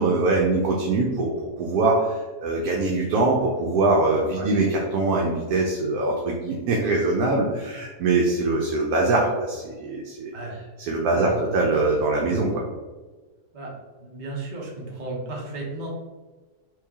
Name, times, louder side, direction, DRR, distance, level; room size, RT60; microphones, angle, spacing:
voice 1, 0.0-10.3 10.9-12.6, right 2 dB, 75° right, -1 dB, 1.0 m, -23 dB
voice 2, 11.1-11.5 13.5-13.7 14.0-15.9, right 2 dB, 40° right, -4 dB, 0.7 m, -34 dB
3.1 x 2.8 x 3.5 m, 1.3 s
omnidirectional pair, 1.7 m